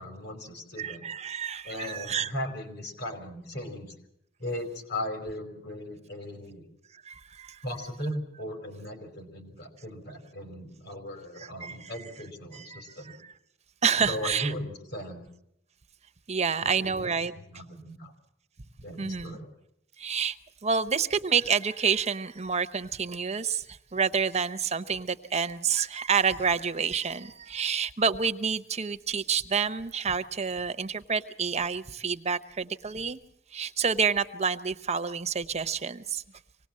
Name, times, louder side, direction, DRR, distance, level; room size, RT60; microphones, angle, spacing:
voice 1, 0.0-1.0 1.6-4.0 4.4-6.6 7.6-13.2 14.1-15.3 16.6-17.1 17.3-18.1 18.8-19.5, left 1 dB, 60° left, 6 dB, 5.0 m, -37 dB
voice 2, 0.8-2.3 7.0-7.6 11.4-11.9 12.5-13.2 13.8-14.5 16.3-17.3 19.0-19.4 20.0-20.4 20.6-33.2 33.5-36.2, right 6 dB, 35° right, 12 dB, 0.8 m, -28 dB
25.5 x 19.0 x 7.5 m, 0.77 s
head